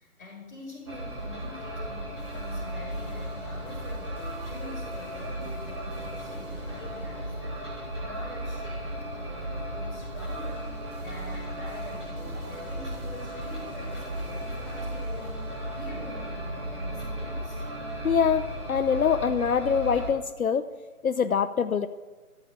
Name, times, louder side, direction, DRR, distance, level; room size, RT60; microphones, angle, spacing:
voice 1, 0.0-7.6 8.0-15.3 15.7-17.6, left 2 dB, 10° left, -12 dB, 4.2 m, -46 dB
sound 1, 0.9-20.1, equal, 20° right, 2.0 m, -35 dB
sound 2, 2.2-18.2, right 3 dB, 70° right, 2.5 m, -48 dB
voice 2, 18.0-20.6 21.0-21.9, left 7 dB, 70° left, 10 dB, 0.7 m, -24 dB
13.0 x 6.9 x 8.5 m, 1.3 s
figure-of-eight pair, 175°, 44 cm